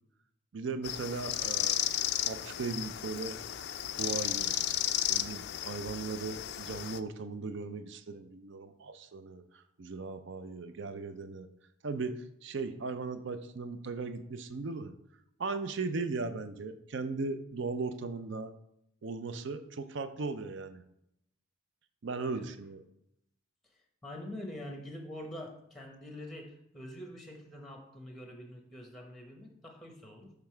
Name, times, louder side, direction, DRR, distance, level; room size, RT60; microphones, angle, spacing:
voice 1, 0.5-1.8 2.3-3.4 4.0-4.6 5.1-9.4 9.8-11.5 11.8-14.9 15.4-18.5 19.0-20.8 22.0-22.8, right 4 dB, 55° right, 10 dB, 0.5 m, -37 dB
sound 1, 0.8-7.0, left 12 dB, 50° left, 0.3 m, -33 dB
voice 2, 23.7-30.3, left 1 dB, ahead, 2 dB, 0.8 m, -45 dB
6.7 x 3.4 x 5.6 m, 0.79 s
head